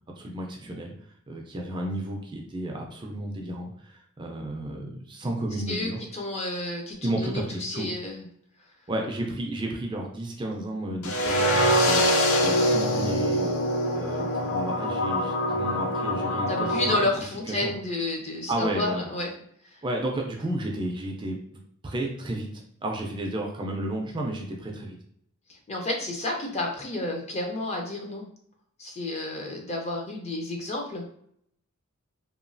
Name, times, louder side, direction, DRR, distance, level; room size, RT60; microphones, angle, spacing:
voice 1, 0.2-0.9 1.3-6.0 7.0-7.9 8.9-13.6 13.9-16.9 17.5-17.7 18.5-19.1 19.8-21.4 21.8-22.5 22.8-25.0, right 1 dB, 20° right, 1 dB, 0.4 m, -32 dB
voice 2, 5.7-8.3 16.5-19.3 19.7-19.8 25.5-28.3 28.8-31.0, left 2 dB, 30° left, 0 dB, 0.6 m, -31 dB
sound 1, 11.0-17.0, equal, 85° left, 0.5 m, -24 dB
2.9 x 2.3 x 2.6 m, 0.67 s
head